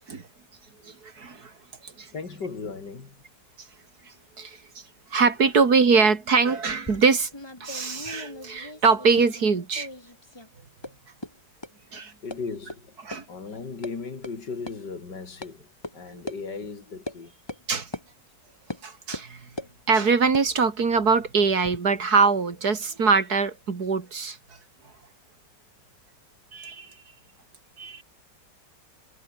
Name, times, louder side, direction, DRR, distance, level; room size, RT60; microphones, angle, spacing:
voice 1, 0.8-1.5 1.8-2.1 4.4-4.6 5.1-7.3 7.6-9.9 11.9-12.1 13.0-13.2 16.1-16.2 17.7-17.9 18.8-19.5 19.9-24.4 26.5-26.9 27.8-28.0, right 5 dB, 55° right, 2.8 m, -23 dB
voice 2, 2.1-3.2 12.2-12.9 13.3-15.7 15.9-17.3, left 4 dB, 65° left, 3.9 m, -36 dB
sound 1, 6.7-9.5 9.7-10.5 10.8-10.9 11.2-11.3 11.6-11.7 12.3-12.4 12.7-12.8 13.1-13.2 13.5-13.9 14.2-14.3 14.7-14.8 15.4-15.5 15.8-15.9 16.3-16.4 17.1-17.2 17.5-17.6 17.9-18.1 18.7-18.8 19.1-19.7 20.2-21.8, left 1 dB, 15° left, 2.4 m, -39 dB
omnidirectional pair, 2.0 m